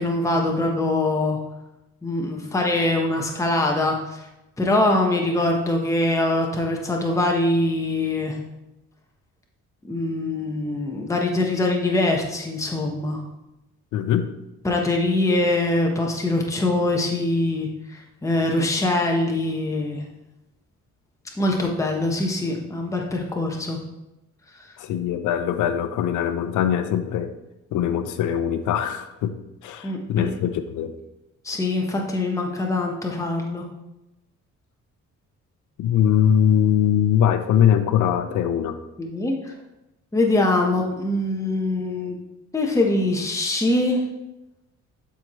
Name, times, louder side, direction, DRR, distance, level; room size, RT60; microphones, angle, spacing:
voice 1, 0.0-1.4 2.0-4.3 4.6-8.4 9.8-13.2 14.6-20.0 21.4-23.8 29.8-30.3 31.4-33.7 39.0-39.5 40.1-42.2 42.5-44.0, left 2 dB, 10° left, 0 dB, 1.1 m, -23 dB
voice 2, 13.9-14.3 24.8-27.3 27.7-29.3 29.6-30.9 35.8-38.8, left 9 dB, 80° left, 8 dB, 0.6 m, -21 dB
11.5 x 4.6 x 3.1 m, 0.93 s
cardioid pair, 90°, 30 cm